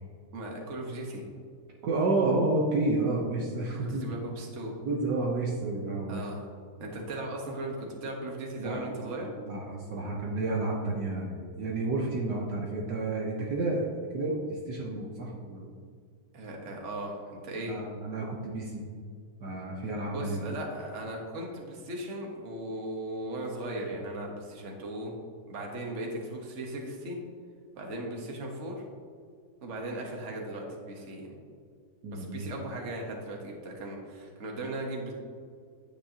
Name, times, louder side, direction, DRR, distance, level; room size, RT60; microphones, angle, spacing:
voice 1, 0.3-1.2 3.7-4.7 6.1-6.4 6.8-9.3 16.3-17.7 20.1-25.1 25.5-27.2 27.7-28.8 29.6-31.3 32.1-35.1, right 1 dB, 40° right, 0 dB, 1.5 m, -37 dB
voice 2, 1.8-4.1 4.8-6.3 8.6-15.7 17.7-18.8 19.4-20.4 32.0-32.5, right 2 dB, 65° right, -2 dB, 1.5 m, -31 dB
9.2 x 8.5 x 2.8 m, 2.1 s
omnidirectional pair, 2.0 m